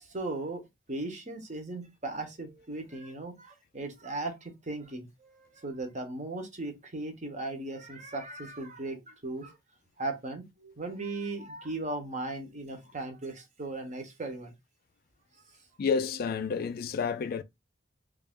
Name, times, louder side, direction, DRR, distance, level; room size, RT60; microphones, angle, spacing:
voice 1, 0.0-9.6 10.0-14.5, right 2 dB, 40° right, 0.9 m, -37 dB
voice 2, 15.8-17.4, left 5 dB, 50° left, 0.3 m, -30 dB
3.2 x 2.4 x 3.5 m
head